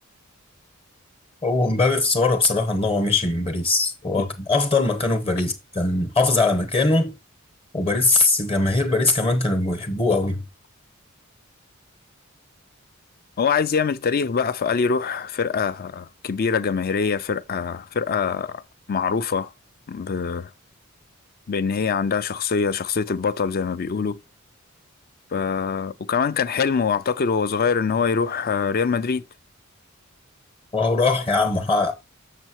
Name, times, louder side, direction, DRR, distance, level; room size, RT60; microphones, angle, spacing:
voice 1, 1.4-7.1 7.7-10.4 30.7-31.9, left 3 dB, 25° left, 1.0 m, -21 dB
voice 2, 13.4-18.6 18.9-19.5 19.9-20.5 21.5-24.2 25.3-29.2, left 5 dB, 45° left, 0.5 m, -24 dB
6.6 x 6.5 x 2.9 m
head